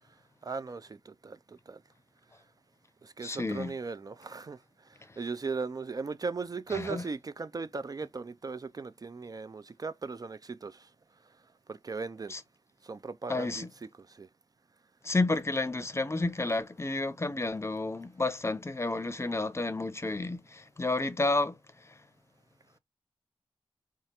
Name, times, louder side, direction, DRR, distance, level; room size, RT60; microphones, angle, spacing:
voice 1, 0.4-1.8 3.0-4.6 5.2-10.9 11.7-12.3 12.8-13.7 14.1-14.3, right 4 dB, 40° right, 0.4 m, -38 dB
voice 2, 3.2-3.7 6.7-7.0 12.3-12.4 13.3-13.7 15.0-21.6, left 2 dB, 30° left, 0.6 m, -31 dB
4.3 x 2.4 x 2.8 m
cardioid pair, 55°, 9 cm